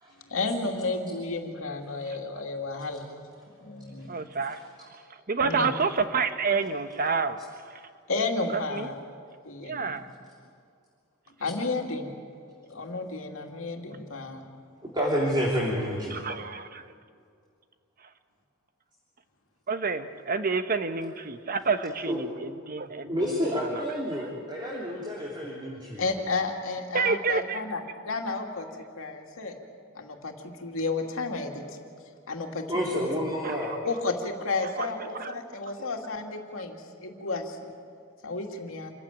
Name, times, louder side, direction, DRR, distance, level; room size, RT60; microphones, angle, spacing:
voice 1, 0.3-3.0 3.6-4.1 5.4-5.7 8.1-8.9 9.4-10.0 11.4-12.2 12.6-14.4 26.0-28.7 29.0-29.5 30.0-31.8 32.3-32.6 32.9-33.1 33.8-37.7 38.2-38.9, left 3 dB, 75° left, 2 dB, 2.6 m, -32 dB
voice 2, 4.1-4.6 5.3-7.4 8.5-8.9 9.6-10.1 16.1-16.9 19.7-23.8 26.9-27.6 33.4-33.8 34.8-34.9 35.1-35.3, right 5 dB, 45° right, 9 dB, 1.1 m, -29 dB
voice 3, 14.8-16.2 22.1-22.4 23.1-26.0 32.7-33.7, equal, 20° right, -4 dB, 3.3 m, -29 dB
28.0 x 15.0 x 9.1 m, 2.3 s
head